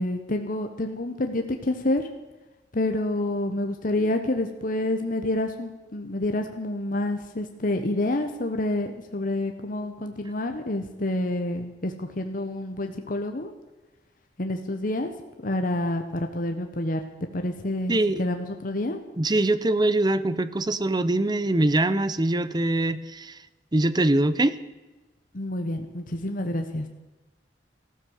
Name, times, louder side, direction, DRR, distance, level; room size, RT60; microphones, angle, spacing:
voice 1, 0.0-2.1 2.7-13.5 14.4-15.1 15.4-17.0 17.3-19.0 25.3-26.9, left 1 dB, 50° left, 5 dB, 1.1 m, -28 dB
voice 2, 17.9-18.2 19.2-23.3 23.7-24.6, right 2 dB, 25° right, 15 dB, 0.7 m, -23 dB
15.0 x 13.0 x 6.5 m, 1.1 s
head